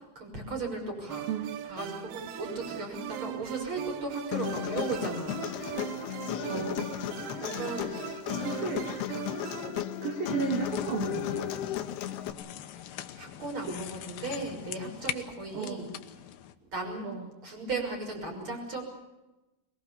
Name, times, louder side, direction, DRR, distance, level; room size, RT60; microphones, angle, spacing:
voice 1, 0.1-1.3 1.6-5.8 6.3-6.7 7.4-8.0 9.6-9.8 12.7-15.9 16.7-17.1 17.4-18.8, right 3 dB, 25° right, 2 dB, 6.4 m, -36 dB
sound 1, 1.1-9.8, right 11 dB, 75° right, 2.3 m, -40 dB
Human voice, 4.3-12.3, left 11 dB, 70° left, 2.7 m, -35 dB
voice 2, 6.5-6.9 8.4-8.9 10.0-11.5 13.6-13.8 15.5-15.9 17.0-17.3, right 5 dB, 50° right, 1 dB, 3.9 m, -33 dB
sound 2, 10.4-16.5, left 11 dB, 90° left, 2.0 m, -42 dB
23.0 x 22.5 x 7.0 m, 1.0 s
omnidirectional pair, 5.8 m